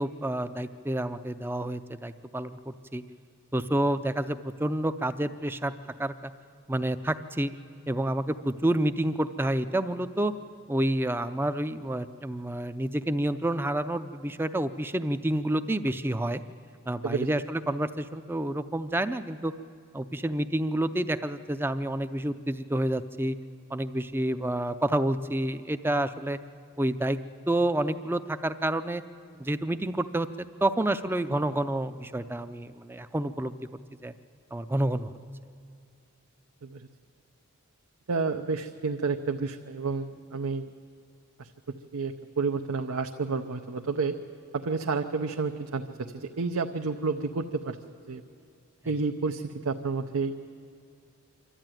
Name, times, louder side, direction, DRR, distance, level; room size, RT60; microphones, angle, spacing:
voice 1, 0.0-3.0 3.5-5.7 6.0-6.3 6.7-7.5 7.9-10.3 10.7-16.4 16.9-19.5 19.9-23.4 23.7-26.4 26.8-27.2 27.5-29.0 29.4-33.5 34.0-34.1 34.5-35.1, right 1 dB, 10° right, 11 dB, 0.4 m, -29 dB
voice 2, 38.1-40.7 41.4-41.5 41.9-44.2 44.5-47.8 48.1-48.2 48.9-50.3, right 4 dB, 85° right, 5 dB, 0.7 m, -30 dB
26.5 x 12.5 x 9.1 m, 2.4 s
head